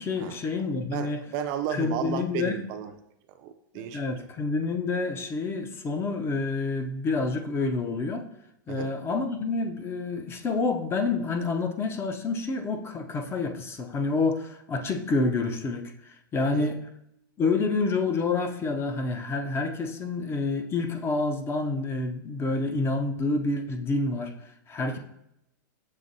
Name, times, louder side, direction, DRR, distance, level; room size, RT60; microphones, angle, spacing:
voice 1, 0.0-1.2 1.7-2.6 3.7-8.3 8.7-16.8 17.4-25.0, left 3 dB, 20° left, 6 dB, 0.4 m, -28 dB
voice 2, 0.7-2.9 3.4-4.0 8.7-8.9 16.5-16.7, right 9 dB, 45° right, 7 dB, 0.4 m, -33 dB
6.4 x 2.9 x 2.7 m, 0.78 s
hypercardioid pair, 125°, 11 cm